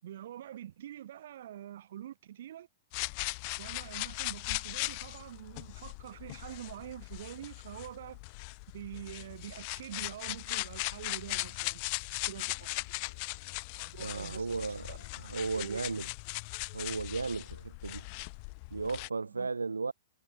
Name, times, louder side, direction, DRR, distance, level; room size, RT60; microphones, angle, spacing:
voice 1, 0.0-2.7 3.6-8.2 8.7-11.8 12.1-12.8 13.8-15.0 15.2-15.8 19.2-19.5, right 11 dB, 60° right, 6.2 m, -45 dB
sound 1, 2.9-19.1, left 35 dB, 40° left, 0.4 m, -39 dB
voice 2, 14.0-14.9 15.2-16.1 16.7-18.1 18.7-19.9, right 4 dB, 80° right, 1.4 m, -35 dB
figure-of-eight pair, 110°, 0 cm